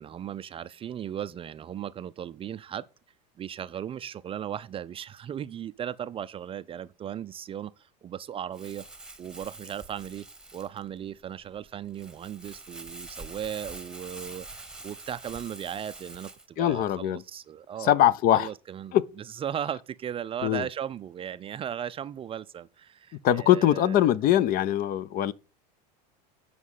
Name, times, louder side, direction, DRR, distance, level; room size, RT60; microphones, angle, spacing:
voice 1, 0.0-2.9 3.4-8.8 9.2-10.3 10.5-14.5 14.8-17.9 18.3-19.0 19.4-24.1, right 9 dB, 25° right, 0.4 m, -37 dB
Crumpling crinkling, 8.5-16.5, right 2 dB, 5° right, 1.1 m, -45 dB
voice 2, 16.6-17.2 17.8-18.5 18.9-19.0 20.4-20.6 23.2-25.3, left 12 dB, 45° left, 0.5 m, -22 dB
8.2 x 5.0 x 5.5 m
supercardioid pair, 100°, 21 cm